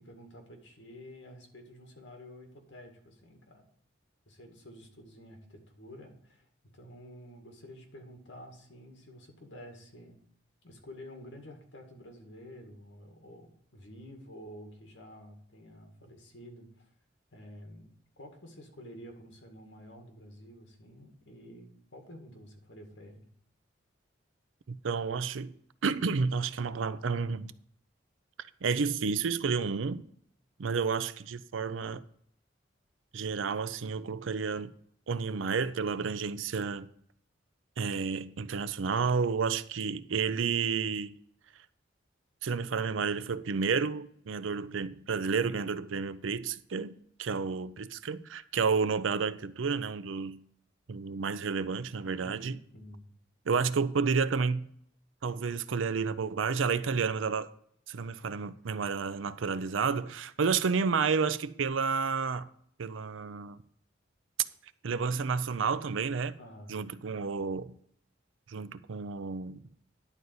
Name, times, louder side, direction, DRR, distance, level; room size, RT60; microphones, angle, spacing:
voice 1, 0.0-3.6 4.3-6.5 6.7-10.2 10.6-16.9 17.3-17.9 18.2-23.3 52.2-53.1 66.4-66.8, equal, 75° left, 2.1 m, -50 dB
voice 2, 24.7-25.5 25.8-27.5 28.6-30.0 30.6-32.0 33.1-34.7 35.1-36.9 37.8-41.2 42.4-50.4 50.9-52.6 53.5-54.7 55.2-57.5 57.9-62.5 62.8-63.6 64.8-66.3 66.7-67.7 68.5-69.6, right 5 dB, 85° right, 0.5 m, -31 dB
11.0 x 4.1 x 7.8 m
head